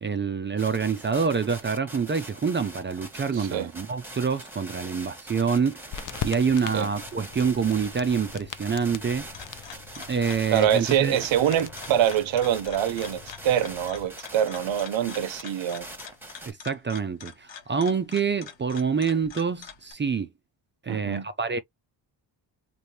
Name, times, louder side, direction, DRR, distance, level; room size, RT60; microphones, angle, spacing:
voice 1, 0.0-9.2 10.0-11.2 16.5-20.3 20.8-21.6, right 6 dB, 25° right, 0.4 m, -26 dB
sound 1, 0.6-16.5, right 1 dB, 5° right, 1.0 m, -43 dB
voice 2, 3.3-3.7 6.7-6.9 10.5-15.9 20.9-21.3, right 10 dB, 75° right, 0.7 m, -25 dB
sound 2, 5.9-14.1, left 9 dB, 45° left, 0.4 m, -41 dB
sound 3, 9.0-19.9, left 7 dB, 70° left, 0.9 m, -45 dB
3.2 x 2.6 x 2.7 m
cardioid pair, 95°, 46 cm